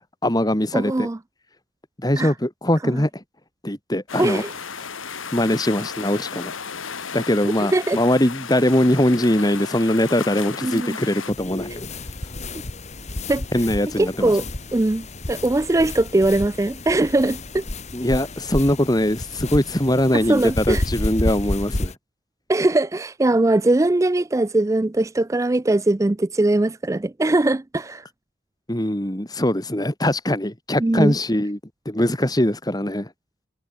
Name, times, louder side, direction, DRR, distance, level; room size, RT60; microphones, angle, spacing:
voice 1, 0.2-1.1 2.0-3.2 3.6-4.4 5.3-6.5 7.1-11.9 13.5-14.3 17.9-21.9 28.7-31.6 31.9-33.1, left 1 dB, 20° left, 2.3 m, -21 dB
voice 2, 0.7-1.2 2.2-2.3 2.8-3.0 4.2-4.5 7.7-8.0 10.6-11.0 11.7-11.8 13.3-13.4 14.0-14.4 14.7-17.6 20.3-20.8 22.5-28.0 30.8-31.1, right 2 dB, 15° right, 0.4 m, -21 dB
sound 1, 4.1-11.3, left 6 dB, 90° left, 2.2 m, -34 dB
sound 2, 11.3-21.9, left 2 dB, 35° left, 1.4 m, -31 dB
head